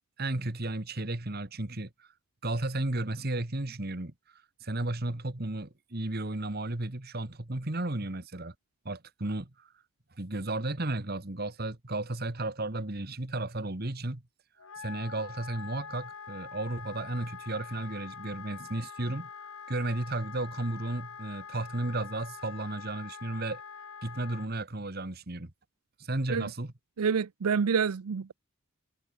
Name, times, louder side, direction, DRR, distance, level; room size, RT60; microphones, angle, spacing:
voice 1, 0.2-2.1 2.4-4.1 4.6-8.5 8.8-9.7 10.2-14.2 14.8-19.3 19.7-23.6 24.0-25.5 26.0-26.7, right 2 dB, 45° right, 1.6 m, -34 dB
Wind instrument woodwind instrument, 14.6-24.5, left 6 dB, 70° left, 1.2 m, -45 dB
voice 2, 27.0-28.3, right 6 dB, 90° right, 0.5 m, -27 dB
head